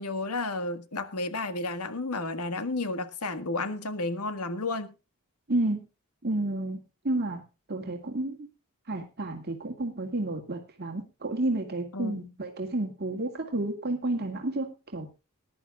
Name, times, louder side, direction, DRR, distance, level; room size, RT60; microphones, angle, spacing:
voice 1, 0.0-4.9 11.9-12.2, left 2 dB, 85° left, 1.7 m, -32 dB
voice 2, 5.5-5.8 6.2-7.4 7.7-8.5 8.9-15.1, right 2 dB, 45° right, 2.2 m, -31 dB
20.5 x 11.0 x 2.4 m
head